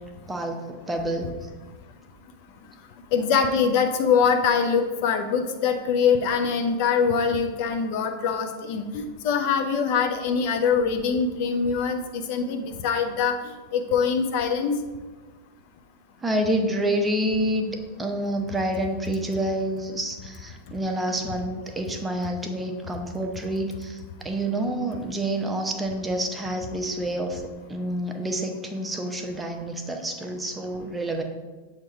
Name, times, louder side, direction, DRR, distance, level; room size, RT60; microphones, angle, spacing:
voice 1, 0.3-0.6 0.9-1.3 16.2-27.4 27.7-31.2, right 1 dB, 10° right, 3 dB, 0.7 m, -28 dB
voice 2, 3.1-13.4 13.7-14.8, left 6 dB, 45° left, 5 dB, 0.6 m, -23 dB
7.6 x 2.9 x 4.8 m, 1.3 s
figure-of-eight pair, 90°, 0 cm